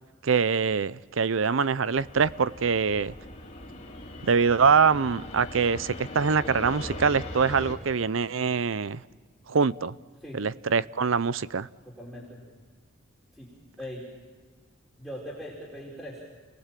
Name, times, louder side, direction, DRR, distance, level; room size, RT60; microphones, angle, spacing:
voice 1, 0.2-3.1 4.3-9.0 9.5-9.9 10.3-11.7, right 5 dB, 75° right, 18 dB, 0.6 m, -24 dB
Fixed-wing aircraft airplane, 1.9-7.8, left 1 dB, 35° left, 3.2 m, -40 dB
voice 2, 11.8-12.4 13.3-13.5 13.8-14.1 15.0-16.2, equal, ahead, -5 dB, 4.2 m, -40 dB
30.0 x 19.5 x 7.5 m, 1.5 s
head